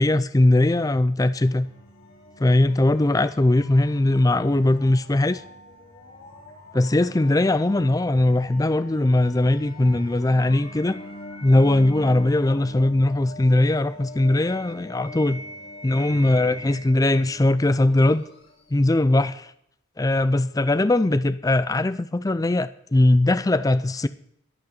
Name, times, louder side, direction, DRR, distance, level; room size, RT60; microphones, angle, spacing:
voice 1, 0.0-1.7 2.4-5.4 6.7-11.0 11.4-15.4 15.8-18.2 18.7-19.5 20.0-24.1, left 2 dB, 15° left, 0.4 m, -20 dB
sound 1, 1.3-18.8, left 1 dB, 45° left, 4.3 m, -43 dB
24.0 x 8.5 x 4.0 m
head